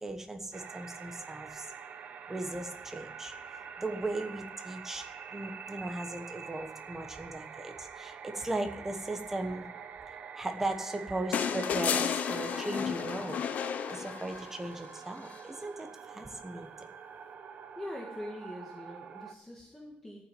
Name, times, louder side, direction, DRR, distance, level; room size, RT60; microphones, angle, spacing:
voice 1, 0.0-1.7 2.3-3.3 3.8-5.1 5.3-9.7 10.3-13.4 13.9-16.7, right 2 dB, 10° right, 5 dB, 1.2 m, -37 dB
sound 1, 0.5-19.3, right 6 dB, 50° right, 0.9 m, -46 dB
sound 2, 11.3-14.7 16.2-16.3, left 8 dB, 55° left, 0.6 m, -32 dB
voice 2, 17.8-20.2, left 1 dB, 5° left, -2 dB, 1.7 m, -43 dB
14.0 x 6.1 x 9.1 m, 0.89 s
wide cardioid pair, 175°, 3 cm